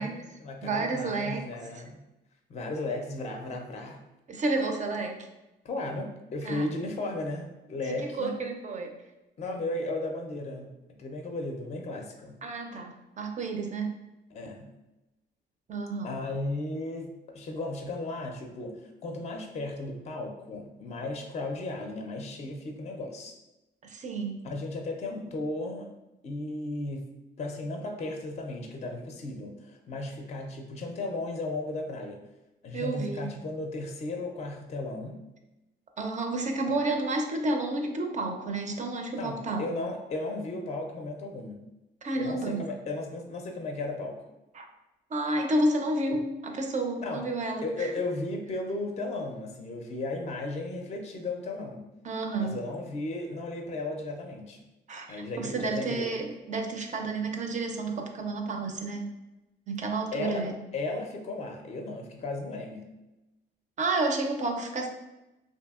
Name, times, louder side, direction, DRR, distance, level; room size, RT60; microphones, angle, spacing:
voice 1, 0.0-2.0 2.5-4.0 5.6-8.4 9.4-10.7 11.0-12.4 14.3-14.7 16.0-23.3 24.4-25.9 26.2-32.2 32.6-35.2 36.7-36.8 39.1-41.6 42.1-44.2 47.0-47.2 47.6-51.9 52.4-54.6 55.1-56.1 60.1-60.5 60.7-62.8, left 2 dB, 35° left, 3 dB, 0.4 m, -35 dB
voice 2, 0.6-1.4 4.3-5.2 6.4-6.7 7.9-8.9 12.4-14.0 15.7-16.1 23.8-24.4 32.7-33.3 36.0-39.7 42.0-42.6 44.5-44.7 45.1-47.9 52.0-52.6 54.9-59.1 59.7-60.5 63.8-64.9, right 2 dB, 40° right, 4 dB, 0.4 m, -30 dB
2.6 x 2.6 x 2.4 m, 0.96 s
cardioid pair, 90°, 20 cm